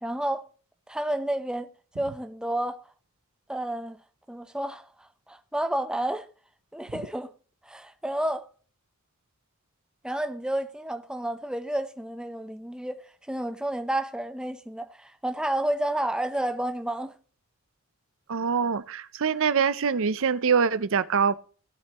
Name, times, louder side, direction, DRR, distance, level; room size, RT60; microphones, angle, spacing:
voice 1, 0.0-0.5 0.9-1.7 2.0-2.9 3.5-4.0 4.3-6.3 6.7-7.3 7.6-8.5 10.0-17.1, right 1 dB, 5° right, 0.8 m, -30 dB
voice 2, 18.3-21.3, right 6 dB, 65° right, 0.6 m, -24 dB
18.0 x 7.6 x 3.0 m
head